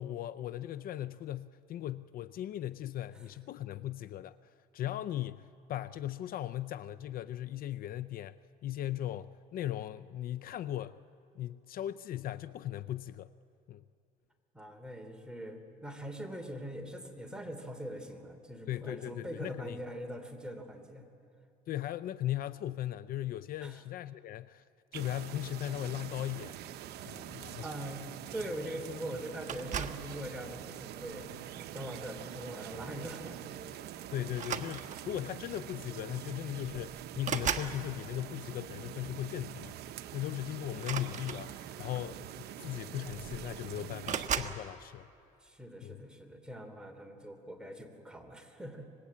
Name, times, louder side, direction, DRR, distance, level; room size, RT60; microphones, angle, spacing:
voice 1, 0.0-4.4 4.7-8.4 8.6-11.0 11.4-13.3 13.7-13.8 18.7-19.8 21.7-24.6 24.9-26.6 27.0-27.7 34.1-39.8 40.1-45.1 45.8-46.0, left 12 dB, 60° left, 0.5 m, -38 dB
voice 2, 14.5-21.0 23.6-23.8 27.6-28.0 28.3-33.5 45.4-48.9, equal, 5° right, 3.0 m, -42 dB
sound 1, 24.9-44.3, right 11 dB, 75° right, 0.9 m, -45 dB
sound 2, 29.5-30.1 31.0-31.3 32.8-33.0 33.3-33.4 34.3-35.2 36.2-36.3 36.6-37.8 40.7-41.8 42.7-42.8 43.1-43.6 44.0-44.6, right 8 dB, 45° right, 1.2 m, -36 dB
25.5 x 20.5 x 8.5 m
cardioid pair, 110°, 17 cm